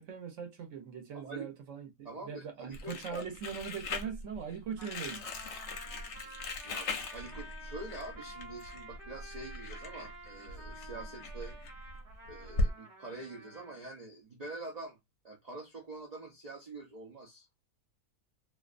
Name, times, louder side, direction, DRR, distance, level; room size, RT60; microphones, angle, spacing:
voice 1, 0.0-5.3, right 7 dB, 60° right, 1.0 m, -41 dB
voice 2, 1.1-1.5 2.0-3.3 6.6-11.6 12.3-15.0 15.2-17.5, right 2 dB, 85° right, 0.3 m, -45 dB
Crumpling crinkling, 2.7-12.7, left 2 dB, 65° left, 0.8 m, -39 dB
Trumpet, 4.8-13.8, right 1 dB, 35° right, 1.0 m, -51 dB
2.6 x 2.1 x 2.4 m
omnidirectional pair, 1.6 m